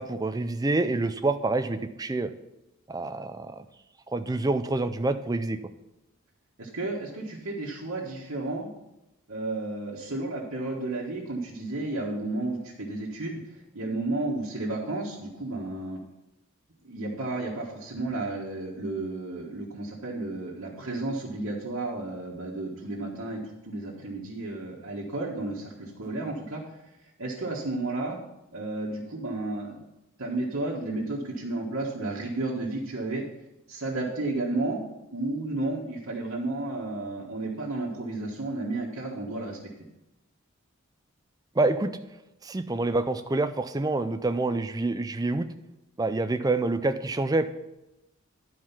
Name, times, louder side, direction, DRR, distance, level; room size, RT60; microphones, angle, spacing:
voice 1, 0.0-2.3 2.9-3.7 4.1-5.6 41.6-42.0 42.4-45.5 46.0-47.4, right 2 dB, 15° right, 10 dB, 0.4 m, -27 dB
voice 2, 6.6-8.7 9.3-16.0 16.8-26.6 27.2-28.2 28.5-29.8 30.2-33.2 33.7-34.8 35.1-39.6, right 2 dB, 70° right, -6 dB, 1.4 m, -32 dB
11.0 x 4.7 x 5.7 m, 0.94 s
head